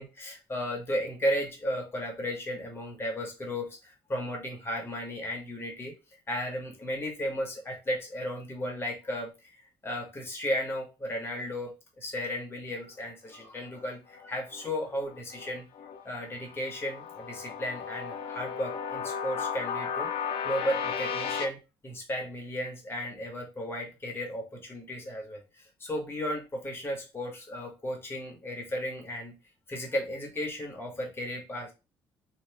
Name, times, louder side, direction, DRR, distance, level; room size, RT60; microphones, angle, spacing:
voice 1, 0.0-5.9 6.3-9.3 9.8-15.7 16.0-20.1 20.4-21.6 21.8-25.4 25.8-29.3 29.7-31.7, equal, 25° left, 1 dB, 1.2 m, -34 dB
sound 1, 13.7-16.0 16.4-21.5, left 6 dB, 75° left, 0.5 m, -35 dB
2.9 x 2.9 x 3.3 m, 0.28 s
cardioid pair, 120°, 10 cm